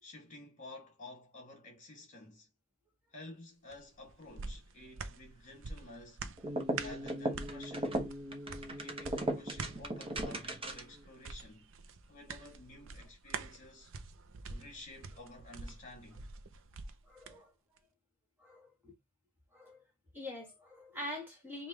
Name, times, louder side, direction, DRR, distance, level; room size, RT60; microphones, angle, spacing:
voice 1, 0.0-2.5 3.1-6.2 6.7-8.0 8.8-11.7 12.1-13.9 14.5-16.3, left 2 dB, 40° left, 2.2 m, -52 dB
sound 1, 3.7-17.4 17.8-17.9, right 4 dB, 65° right, 0.6 m, -46 dB
sound 2, 6.4-11.0, right 1 dB, 25° right, 0.9 m, -37 dB
voice 2, 17.0-17.5 18.4-18.9 19.5-19.8 20.1-21.7, left 1 dB, 10° right, 1.6 m, -45 dB
5.2 x 2.4 x 3.1 m
head